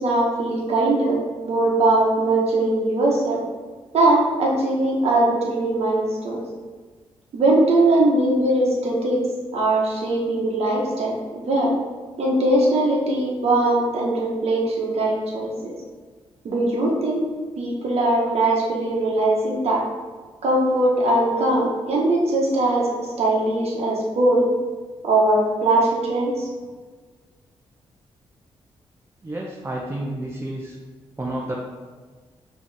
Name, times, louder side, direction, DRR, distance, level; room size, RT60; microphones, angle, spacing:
voice 1, 0.0-3.4 3.9-6.4 7.3-9.2 9.5-11.7 12.2-15.7 16.4-17.2 17.6-19.8 20.4-22.9 23.2-24.5 25.0-26.5, right 2 dB, 65° right, -2 dB, 1.1 m, -20 dB
voice 2, 29.2-30.8 31.2-31.6, right 1 dB, 25° right, -3 dB, 0.7 m, -30 dB
5.2 x 3.0 x 3.4 m, 1.4 s
cardioid pair, 60°, 11 cm